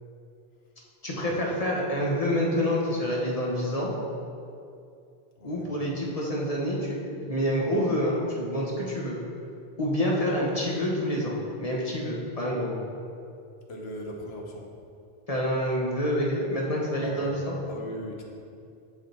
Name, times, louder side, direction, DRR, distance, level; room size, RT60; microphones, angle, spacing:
voice 1, 1.0-3.9 5.4-9.2 9.8-12.8 15.3-17.5, equal, 35° left, -3 dB, 1.3 m, -27 dB
voice 2, 5.4-5.7 13.7-14.6 17.0-17.4 17.7-18.2, equal, 75° left, 1 dB, 1.3 m, -38 dB
7.3 x 6.7 x 4.2 m, 2.5 s
omnidirectional pair, 1.1 m